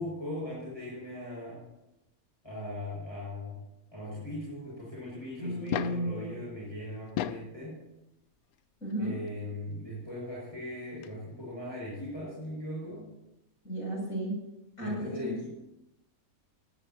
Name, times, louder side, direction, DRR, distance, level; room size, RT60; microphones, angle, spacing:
voice 1, 0.0-1.7 2.4-3.6 3.9-7.8 9.0-13.1 14.8-15.5, left 1 dB, 15° left, -7 dB, 6.3 m, -39 dB
voice 2, 5.4-6.4 8.8-9.2 13.6-14.4 14.8-15.3, right 1 dB, 70° left, -2 dB, 7.7 m, -34 dB
sound 1, 5.5-6.1 7.0-7.5 8.9-9.0 10.7-10.8 11.0-11.1, left 10 dB, 90° left, 1.2 m, -34 dB
19.5 x 17.5 x 2.9 m, 0.91 s
omnidirectional pair, 1.5 m